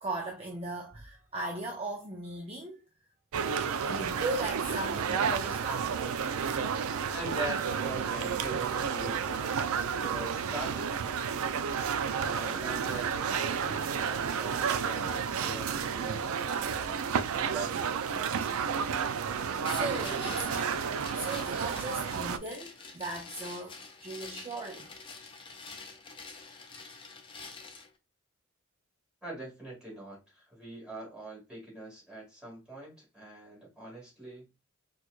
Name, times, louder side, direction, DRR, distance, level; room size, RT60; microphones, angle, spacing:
voice 1, 0.0-2.8 3.8-6.0 6.6-6.7 19.7-24.9, right 2 dB, 30° right, 0.5 m, -38 dB
sound 1, 3.3-22.4, right 6 dB, 90° right, 0.4 m, -31 dB
voice 2, 7.1-9.6 10.0-10.9 12.2-16.3 17.3-18.2 29.2-34.5, right 1 dB, 5° right, 2.0 m, -42 dB
sound 2, 19.6-27.9, left 4 dB, 25° left, 0.5 m, -46 dB
4.4 x 2.4 x 2.3 m
head